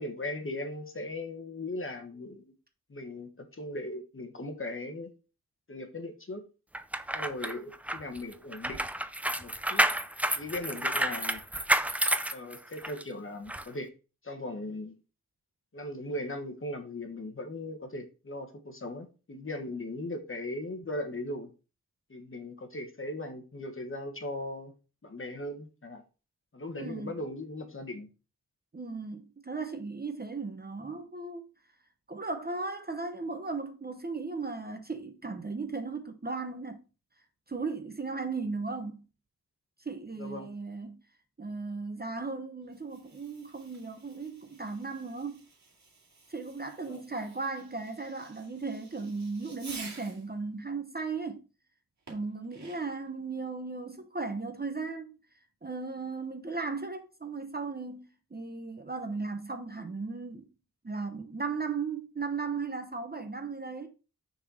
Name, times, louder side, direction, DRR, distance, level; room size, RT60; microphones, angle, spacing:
voice 1, 0.0-2.5 2.9-5.1 5.7-6.4 7.1-8.8 9.4-9.8 10.4-11.4 12.3-13.9 14.2-14.9 15.7-21.5 22.1-24.7 25.0-26.0 26.5-28.1 40.2-40.5 46.8-47.0, left 1 dB, 35° left, 1.2 m, -38 dB
sound 1, 6.7-13.0 13.5-13.6, right 1 dB, 5° right, 0.3 m, -30 dB
voice 2, 26.8-27.1 28.7-31.4 32.1-36.8 37.5-39.0 39.8-41.0 41.4-45.5 46.3-51.4 52.1-55.1 55.6-60.5 60.8-63.9, right 4 dB, 25° right, 0.8 m, -36 dB
Fireworks, 42.6-50.3 52.1-53.1, right 3 dB, 50° right, 2.2 m, -51 dB
6.5 x 4.2 x 4.8 m
wide cardioid pair, 135°, 38 cm